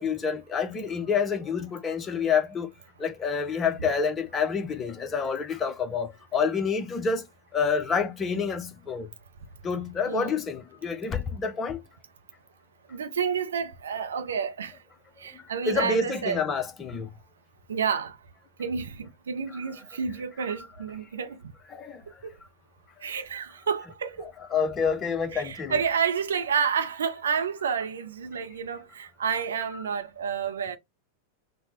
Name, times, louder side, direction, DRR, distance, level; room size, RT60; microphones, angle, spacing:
voice 1, 0.0-2.7 3.0-7.2 7.5-9.1 9.6-11.8 15.7-17.1 21.8-22.0 24.2-25.8, left 5 dB, 20° left, 0.6 m, -28 dB
voice 2, 10.1-10.4 12.9-14.8 15.2-16.4 17.7-18.2 18.6-21.5 22.2-22.4 23.0-24.3 25.3-30.8, right 6 dB, 65° right, 0.5 m, -30 dB
4.0 x 2.0 x 2.9 m
figure-of-eight pair, 90°, 0 cm